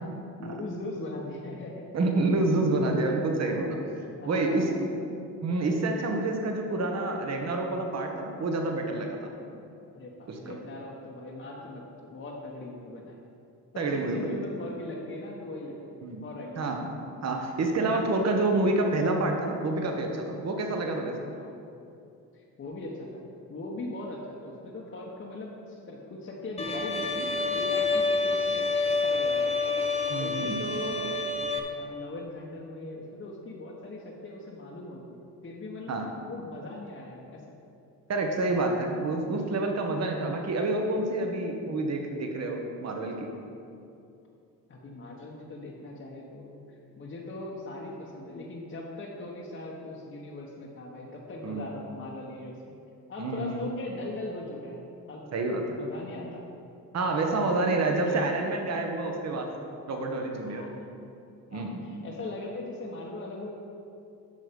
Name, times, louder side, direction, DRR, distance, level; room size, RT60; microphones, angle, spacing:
voice 1, 0.4-1.8 3.0-3.2 4.2-4.8 9.9-13.2 13.7-16.8 21.3-21.5 22.3-29.6 30.2-31.2 31.7-36.0 36.2-37.5 40.0-40.1 44.7-46.6 47.0-52.8 53.1-54.8 55.1-55.3 55.7-56.4 57.9-58.2 60.5-60.8 61.5-63.5, left 2 dB, 35° left, -3 dB, 1.2 m, -40 dB
voice 2, 1.9-3.8 4.2-4.9 5.4-9.3 10.3-10.6 13.8-14.3 16.0-16.2 16.6-16.9 17.2-21.2 30.1-30.6 35.9-36.1 38.1-43.3 51.4-51.7 53.2-53.6 55.3-55.8 56.9-59.5 59.9-60.7 61.5-61.8, right 2 dB, 40° right, 3 dB, 1.4 m, -28 dB
Bowed string instrument, 26.6-31.6, left 3 dB, 15° left, 0.9 m, -28 dB
8.9 x 6.3 x 5.2 m, 2.6 s
cardioid pair, 100°, 39 cm